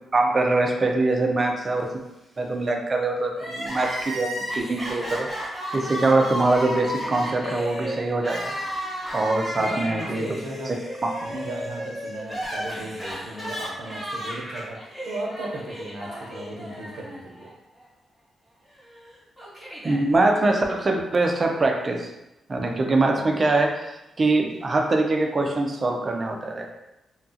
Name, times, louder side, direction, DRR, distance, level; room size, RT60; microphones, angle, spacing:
voice 1, 0.1-2.0 2.4-5.3 5.7-8.5 9.1-11.1 19.8-22.1 22.5-26.7, right 2 dB, 30° right, 2 dB, 0.3 m, -23 dB
Crying sobbing, 3.3-17.5 17.8-17.9 18.9-20.0, equal, 10° left, 1.1 m, -33 dB
voice 2, 9.6-10.7 11.2-17.5, right 1 dB, 90° right, -1 dB, 0.6 m, -36 dB
2.8 x 2.3 x 2.7 m, 0.94 s
wide cardioid pair, 155°, 0 cm